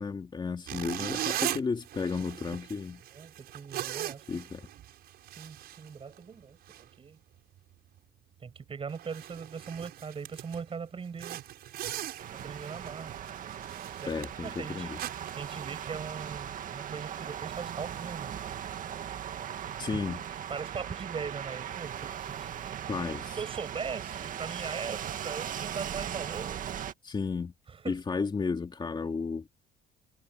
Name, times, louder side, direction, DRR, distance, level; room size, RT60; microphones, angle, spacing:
voice 1, 0.0-3.0 4.3-4.6 14.1-15.0 19.8-20.2 22.9-23.4 27.0-27.5 27.9-29.5, left 4 dB, 25° left, 2.8 m, -33 dB
sound 1, 0.7-6.4 6.7-6.9 7.4-7.6 8.0-8.1 8.6-8.7 8.9-10.7 11.2-16.2, right 12 dB, 70° right, 5.8 m, -39 dB
voice 2, 3.1-4.4 5.4-6.6 7.0-7.2 8.4-11.4 12.4-13.2 14.0-14.1 14.4-14.9 15.4-18.3 19.7-20.0 20.3-22.8 23.4-26.7 27.7-28.0, right 6 dB, 35° right, 6.2 m, -40 dB
sound 2, 12.2-26.9, right 9 dB, 50° right, 1.9 m, -38 dB
cardioid pair, 110°, 17 cm